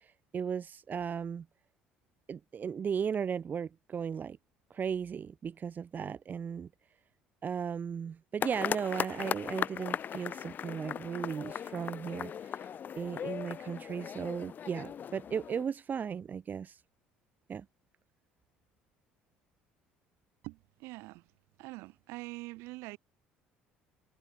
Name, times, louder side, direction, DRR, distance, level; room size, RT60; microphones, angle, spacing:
voice 1, 0.0-1.5 2.3-4.4 4.7-6.7 7.4-12.7 13.0-16.8 17.5-17.7, right 7 dB, 40° right, 2.6 m, -36 dB
sound 1, 8.4-15.7, left 8 dB, 40° left, 0.6 m, -38 dB
voice 2, 20.4-21.3 21.6-23.0, right 22 dB, 65° right, 4.6 m, -44 dB
hypercardioid pair, 60°, 5 cm